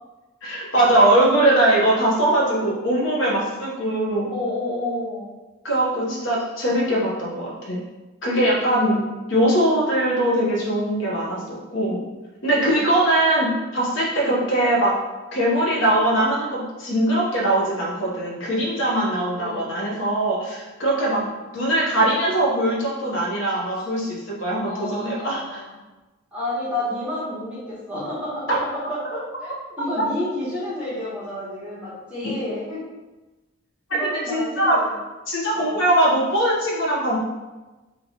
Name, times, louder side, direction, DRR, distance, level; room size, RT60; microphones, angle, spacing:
voice 1, 0.4-4.3 5.6-7.8 8.2-9.0 9.3-12.0 12.4-14.9 15.3-21.2 21.5-25.6 28.5-28.6 34.0-34.8 35.3-37.2, right 1 dB, 60° left, -5 dB, 1.0 m, -21 dB
voice 2, 4.3-5.3 5.9-6.3 6.5-6.7 8.6-9.1 12.4-12.9 14.2-14.5 19.4-19.7 21.1-21.3 23.7-23.9 24.6-25.8 26.3-29.5 29.8-32.9 33.9-35.0 35.5-35.8, left 1 dB, 5° right, -9 dB, 1.1 m, -31 dB
3.1 x 2.9 x 4.1 m, 1.1 s
head